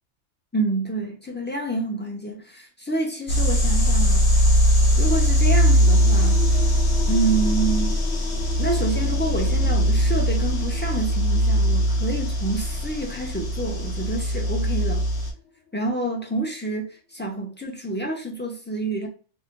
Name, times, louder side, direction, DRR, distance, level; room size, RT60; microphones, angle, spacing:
voice 1, 0.5-4.2 5.0-6.4 7.1-8.0 8.6-15.1 15.7-19.1, right 2 dB, 20° left, 0.3 m, -28 dB
sound 1, 3.3-15.3, equal, 60° left, 1.3 m, -20 dB
sound 2, 5.2-16.3, left 6 dB, 80° left, 1.1 m, -40 dB
3.2 x 2.6 x 2.4 m
omnidirectional pair, 1.3 m